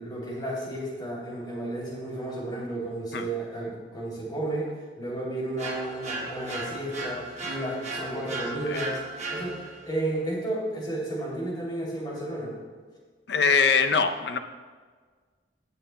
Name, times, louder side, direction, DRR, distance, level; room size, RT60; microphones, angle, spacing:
voice 1, 0.0-9.0 9.3-12.5, right 1 dB, 25° left, -5 dB, 2.8 m, -32 dB
sound 1, 5.6-9.9, right 2 dB, 40° right, 1.3 m, -36 dB
voice 2, 13.3-14.4, left 5 dB, 65° left, 8 dB, 0.6 m, -22 dB
16.5 x 7.7 x 2.2 m, 1.5 s
head